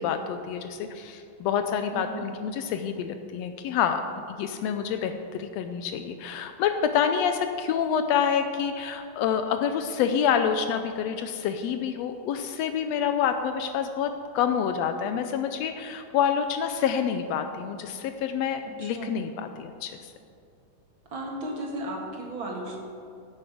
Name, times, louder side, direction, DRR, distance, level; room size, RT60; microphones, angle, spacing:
voice 1, 0.0-4.0 4.3-20.1, left 8 dB, 85° left, 7 dB, 1.5 m, -27 dB
voice 2, 1.9-2.3 18.8-19.1 21.1-22.8, right 1 dB, 45° right, -1 dB, 2.3 m, -35 dB
15.5 x 8.4 x 5.1 m, 2.5 s
omnidirectional pair, 3.6 m